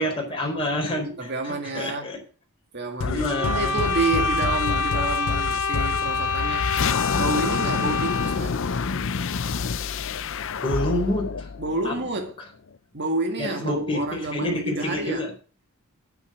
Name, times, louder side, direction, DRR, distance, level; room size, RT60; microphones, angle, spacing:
voice 1, 0.0-2.2 3.1-3.8 10.6-11.5 11.8-11.9 13.4-15.3, left 1 dB, 25° left, 4.6 m, -28 dB
voice 2, 1.2-2.1 2.7-6.6 7.1-8.6 11.6-12.4 12.9-15.2, right 2 dB, 50° right, 2.1 m, -29 dB
sound 1, 3.0-12.3, left 5 dB, 60° left, 0.6 m, -28 dB
sound 2, 3.3-8.5, left 4 dB, 85° left, 2.1 m, -26 dB
9.8 x 8.6 x 6.4 m
head